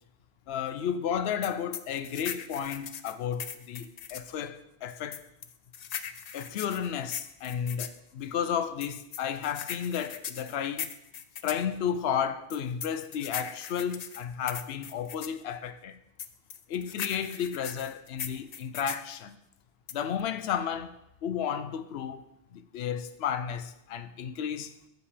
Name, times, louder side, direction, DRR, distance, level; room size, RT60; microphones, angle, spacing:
voice 1, 0.5-5.2 6.3-10.9 11.4-16.0 16.7-19.4 19.9-20.9 21.2-22.3 22.5-24.7, left 8 dB, 75° left, 0.9 m, -33 dB
sound 1, 1.4-4.3 5.1-8.0 8.8-11.6 12.5-15.4 16.2-19.1 19.9-20.2, left 8 dB, 55° left, 0.5 m, -39 dB
15.5 x 5.3 x 3.3 m
omnidirectional pair, 1.1 m